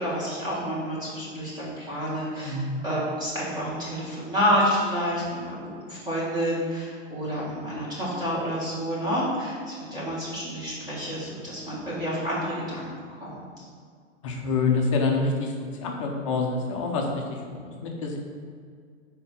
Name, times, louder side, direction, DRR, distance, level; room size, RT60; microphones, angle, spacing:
voice 1, 0.0-5.6 5.8-13.6, equal, 10° right, -8 dB, 1.5 m, -29 dB
voice 2, 2.4-2.8 14.2-15.6 15.8-18.2, left 3 dB, 25° left, 1 dB, 0.5 m, -27 dB
4.4 x 4.4 x 5.4 m, 2.1 s
hypercardioid pair, 155°, 39 cm